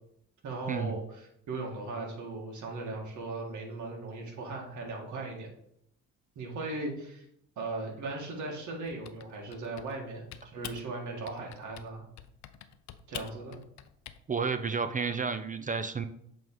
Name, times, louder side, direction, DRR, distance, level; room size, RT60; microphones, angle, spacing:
voice 1, 0.4-5.5 6.4-7.2 7.6-12.1 13.1-13.6, right 2 dB, 70° right, 0 dB, 1.9 m, -38 dB
Typing, 8.9-10.0 10.3-10.9 11.3-11.9 12.2-14.2, left 11 dB, 65° left, 0.6 m, -46 dB
voice 2, 14.3-16.0, right 5 dB, 25° right, 10 dB, 0.4 m, -31 dB
7.6 x 3.5 x 3.8 m, 0.73 s
cardioid pair, 90°, 30 cm